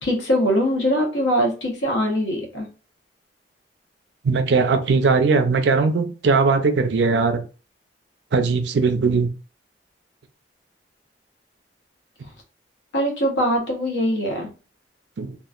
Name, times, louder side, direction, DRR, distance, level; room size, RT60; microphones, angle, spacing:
voice 1, 0.0-2.7 12.9-14.5, equal, 85° left, 1 dB, 0.9 m, -22 dB
voice 2, 4.2-7.4 8.3-9.3 15.2-15.4, right 4 dB, 75° right, 8 dB, 0.4 m, -19 dB
2.8 x 2.3 x 2.4 m, 0.34 s
head